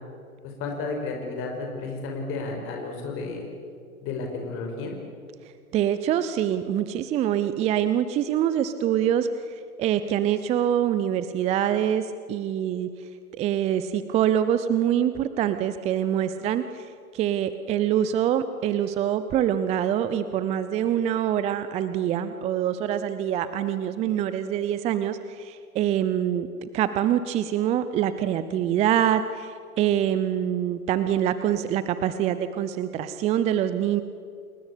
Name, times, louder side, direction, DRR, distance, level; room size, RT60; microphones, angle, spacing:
voice 1, 0.4-3.5 4.0-4.9, left 3 dB, 30° left, 2 dB, 5.5 m, -32 dB
voice 2, 5.7-12.9 13.3-34.0, right 10 dB, 15° right, 12 dB, 0.7 m, -25 dB
29.5 x 21.0 x 8.6 m, 2.2 s
figure-of-eight pair, 120°, 44 cm